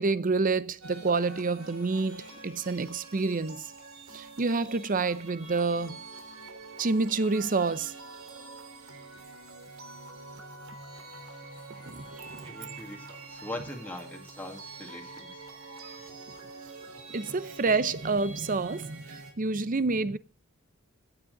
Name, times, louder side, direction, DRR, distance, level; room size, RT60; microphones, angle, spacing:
voice 1, 0.0-3.6 4.1-6.0 6.8-7.9 8.3-8.4 11.9-12.5 17.1-20.2, right 3 dB, 40° right, 0.6 m, -28 dB
sound 1, 0.8-19.3, right 3 dB, 70° right, 3.5 m, -46 dB
voice 2, 12.4-15.4, left 1 dB, 5° left, 2.0 m, -41 dB
16.0 x 8.7 x 3.9 m
head